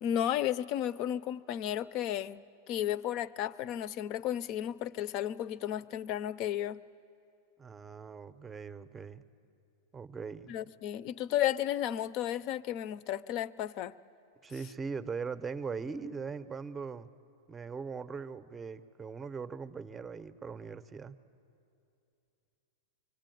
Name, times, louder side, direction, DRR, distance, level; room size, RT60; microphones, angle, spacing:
voice 1, 0.0-6.8 10.5-13.9, left 11 dB, 40° left, 0.5 m, -33 dB
voice 2, 7.6-9.2 9.9-10.6 14.4-17.1 17.5-21.2, right 5 dB, 15° right, 0.7 m, -40 dB
25.0 x 24.5 x 9.2 m
supercardioid pair, 155°, 0 cm